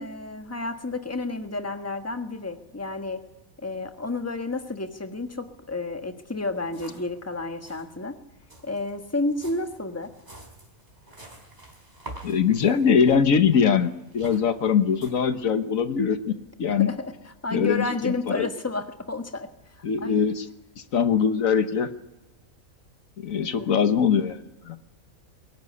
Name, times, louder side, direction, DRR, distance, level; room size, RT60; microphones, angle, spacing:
voice 1, 0.0-3.2 3.6-8.1 8.6-10.1 16.6-17.1 17.4-19.5 20.0-20.2 23.3-23.7, left 3 dB, 10° left, 7 dB, 1.5 m, -31 dB
sound 1, 6.2-6.3 6.6-7.2 7.4-7.9 8.4-15.1, right 1 dB, 30° right, 4.2 m, -46 dB
voice 2, 12.2-16.9 17.5-18.5 19.8-20.5 20.9-21.9 23.2-24.8, left 6 dB, 75° left, 10 dB, 1.5 m, -22 dB
22.0 x 17.5 x 9.8 m, 0.98 s
omnidirectional pair, 1.4 m